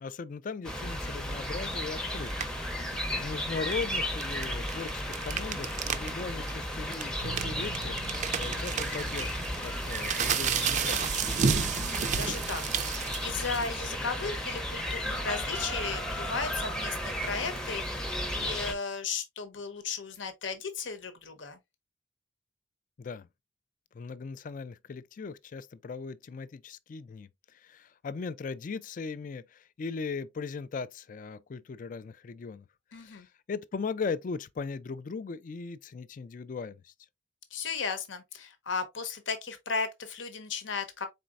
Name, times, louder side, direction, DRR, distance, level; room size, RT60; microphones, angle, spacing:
voice 1, 0.0-11.3 23.0-23.3 23.9-32.7 33.0-36.9, left 5 dB, 45° left, 0.3 m, -39 dB
sound 1, 0.6-18.7, equal, 5° left, 0.6 m, -34 dB
sound 2, 2.3-2.6 3.6-6.1 6.4-6.5 6.9-13.9, right 6 dB, 40° right, 0.4 m, -31 dB
Bass guitar, 7.2-17.0, right 1 dB, 80° right, 0.7 m, -48 dB
voice 2, 11.8-21.6 32.9-33.3 37.5-41.1, left 5 dB, 80° left, 0.9 m, -36 dB
4.3 x 4.0 x 2.4 m
head